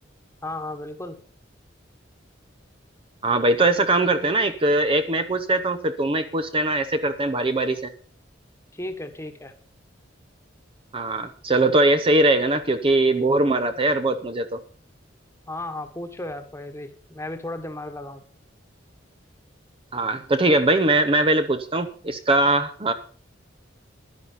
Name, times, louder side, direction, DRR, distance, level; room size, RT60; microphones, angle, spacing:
voice 1, 0.4-1.2 8.7-9.5 15.5-18.2, left 2 dB, 15° left, 7 dB, 1.4 m, -34 dB
voice 2, 3.2-7.9 10.9-14.6 19.9-22.9, right 2 dB, 30° right, 9 dB, 0.8 m, -21 dB
11.5 x 10.5 x 5.6 m, 0.43 s
head